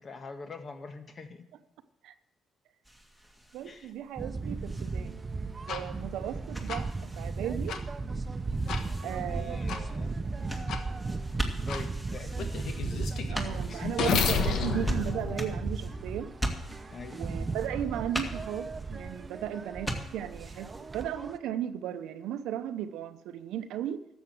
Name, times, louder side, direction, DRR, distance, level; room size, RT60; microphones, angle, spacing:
voice 1, 0.0-1.4 3.6-3.9 8.9-10.1 10.4-11.3 11.6-12.3 13.7-14.1 16.9-17.3, left 4 dB, 45° left, 1.6 m, -44 dB
sound 1, 2.8-21.0, equal, 5° left, 2.0 m, -41 dB
voice 2, 3.5-5.2 5.7-7.8 9.0-9.6 13.3-16.3 17.1-24.0, right 10 dB, 85° right, 0.7 m, -36 dB
sound 2, 4.2-21.4, right 3 dB, 30° right, 0.8 m, -36 dB
sound 3, 5.7-5.8 6.7-6.8 7.7-7.8 8.7-8.8 9.7-9.8 10.7-10.8 11.7-11.8 12.4-16.3, left 6 dB, 75° left, 1.3 m, -31 dB
13.0 x 7.3 x 7.8 m
cardioid pair, 90°, 0 cm